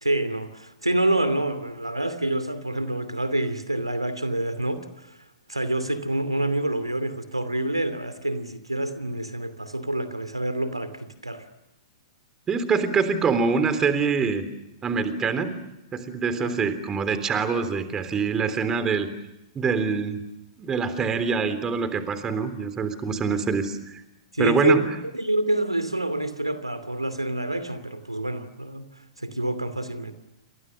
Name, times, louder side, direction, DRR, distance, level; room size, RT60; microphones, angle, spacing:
voice 1, 0.0-5.2 5.5-11.4 16.4-16.5 23.2-23.4 24.3-28.8 29.2-30.1, right 1 dB, 90° right, 12 dB, 2.6 m, -27 dB
voice 2, 12.5-14.5 14.8-15.6 15.9-19.1 19.6-20.2 20.6-24.0 24.4-24.8, right 5 dB, 20° right, 11 dB, 3.5 m, -25 dB
29.5 x 26.5 x 6.7 m, 0.89 s
figure-of-eight pair, 105°, 3 cm